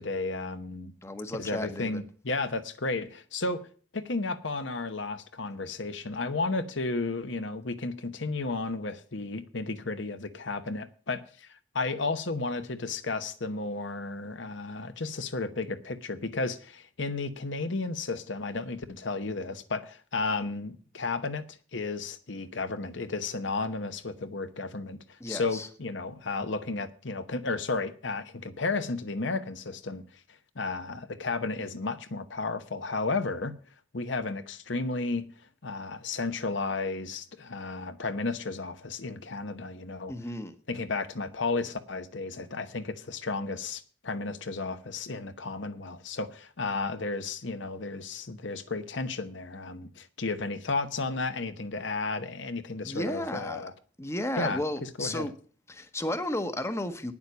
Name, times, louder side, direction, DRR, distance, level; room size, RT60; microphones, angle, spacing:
voice 1, 0.0-0.9 1.3-3.6 3.9-21.4 21.7-30.0 30.6-33.5 33.9-35.3 35.6-40.1 40.7-53.7 54.4-55.3, left 3 dB, 75° left, 1.0 m, -33 dB
voice 2, 1.0-2.0 25.2-25.7 40.1-40.6 52.8-53.6 54.0-55.3 55.7-57.1, left 1 dB, 15° left, 0.9 m, -33 dB
9.6 x 7.2 x 8.0 m
head